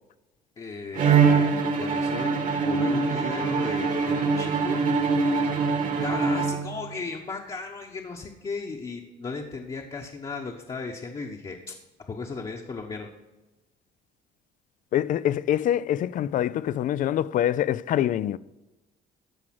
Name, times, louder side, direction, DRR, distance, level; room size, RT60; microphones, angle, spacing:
voice 1, 0.6-2.4 2.6-4.8 6.0-11.7 12.1-13.1, left 4 dB, 30° left, 1.1 m, -36 dB
Bowed string instrument, 0.9-7.0, right 5 dB, 50° right, 1.6 m, -23 dB
voice 2, 14.9-18.4, left 11 dB, 50° left, 0.4 m, -25 dB
14.0 x 4.8 x 6.0 m
cardioid pair, 110°, 17 cm